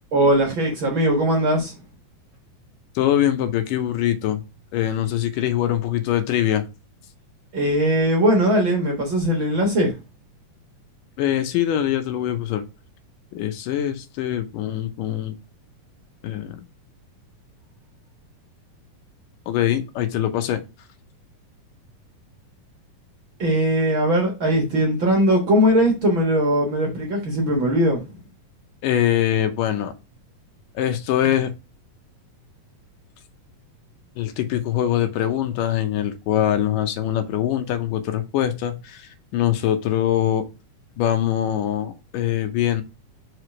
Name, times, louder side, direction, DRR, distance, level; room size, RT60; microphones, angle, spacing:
voice 1, 0.1-1.7 7.5-9.9 23.4-28.1, equal, 50° right, 1.7 m, -20 dB
voice 2, 3.0-4.4 4.7-6.7 11.2-12.6 13.3-15.4 16.2-16.6 19.5-20.6 28.8-29.9 30.8-31.5 34.2-39.1 39.3-40.5 41.0-42.8, left 11 dB, 80° left, 2.4 m, -23 dB
5.0 x 4.8 x 4.7 m
omnidirectional pair, 3.9 m